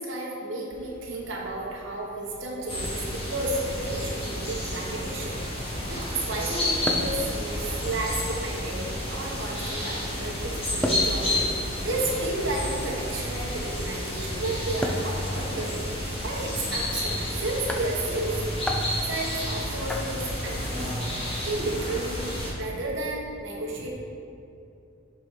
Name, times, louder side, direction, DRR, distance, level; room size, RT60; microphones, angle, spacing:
voice 1, 0.0-15.8 16.2-18.3 19.1-20.8 21.4-22.3 22.6-23.9, right 2 dB, 65° right, -3 dB, 1.3 m, -32 dB
sound 1, 0.7-20.5, left 1 dB, 5° left, 0.4 m, -39 dB
sound 2, 2.7-22.5, left 1 dB, 25° left, 1.5 m, -31 dB
6.9 x 4.4 x 4.9 m, 2.7 s
head